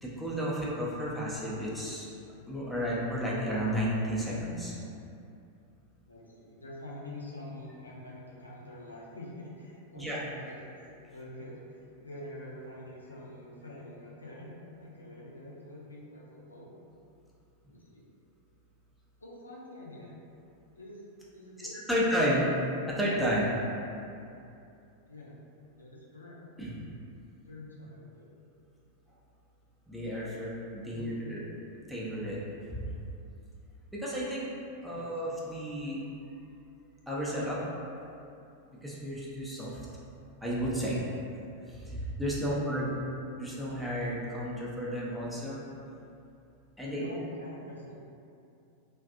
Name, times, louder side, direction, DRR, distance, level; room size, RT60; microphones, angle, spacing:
voice 1, 0.0-2.1 2.5-4.7 9.9-10.2 21.6-22.4 22.9-23.5 26.6-26.7 29.9-31.4 31.9-32.4 32.7-32.8 33.9-34.5 34.8-36.0 37.1-37.6 38.8-39.7 40.4-41.0 41.7-42.8 43.3-45.6 46.8-47.0, equal, ahead, -7 dB, 0.5 m, -32 dB
voice 2, 6.0-10.8 11.1-11.6 12.0-16.7 17.7-18.1 19.2-20.1 20.7-21.0 21.3-22.3 25.0-25.4 25.8-26.4 27.5-28.3 30.9-31.3 34.9-35.1 42.4-42.9 46.9-48.0, left 1 dB, 80° left, -4 dB, 0.4 m, -46 dB
2.4 x 2.2 x 2.5 m, 2.6 s
figure-of-eight pair, 90°, 0 cm